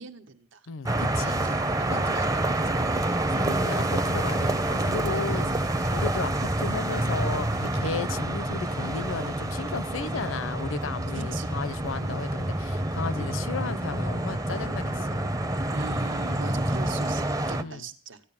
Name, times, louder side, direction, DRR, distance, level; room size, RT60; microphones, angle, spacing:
voice 1, 0.0-0.7 1.2-4.0 4.8-6.2 11.1-11.5 12.0-12.2 13.2-13.3 15.7-18.2, right 4 dB, 70° right, 1.4 m, -41 dB
voice 2, 0.7-1.4 1.9-2.1 3.4-5.6 5.9-15.3 17.6-17.9, left 4 dB, 75° left, 0.6 m, -34 dB
sound 1, 0.9-17.6, right 1 dB, 15° right, 0.6 m, -27 dB
15.0 x 10.5 x 7.2 m
head